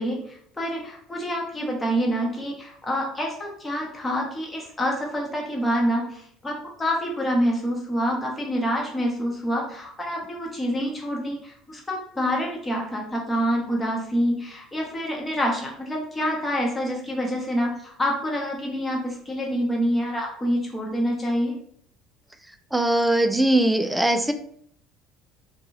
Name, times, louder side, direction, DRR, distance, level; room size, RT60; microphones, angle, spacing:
voice 1, 0.0-21.6, equal, 20° left, -1 dB, 1.0 m, -27 dB
voice 2, 22.7-24.3, right 1 dB, 5° right, 7 dB, 0.3 m, -20 dB
2.6 x 2.3 x 3.0 m, 0.65 s
hypercardioid pair, 65°, 0 cm